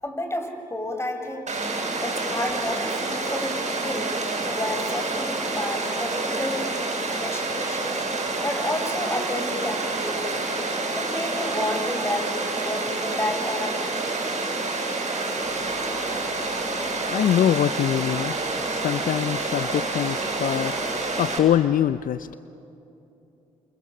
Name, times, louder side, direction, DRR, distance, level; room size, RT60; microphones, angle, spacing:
voice 1, 0.0-1.5 2.0-4.1 4.4-6.7 7.1-8.0 8.4-10.5 11.0-13.8, left 1 dB, 15° left, 5 dB, 5.9 m, -31 dB
Water, 1.5-21.4, right 3 dB, 45° right, 7.6 m, -28 dB
voice 2, 16.4-16.7 17.1-18.4 18.6-22.4, left 10 dB, 55° left, 15 dB, 0.5 m, -24 dB
28.5 x 27.0 x 7.3 m, 2.8 s
hypercardioid pair, 45°, 17 cm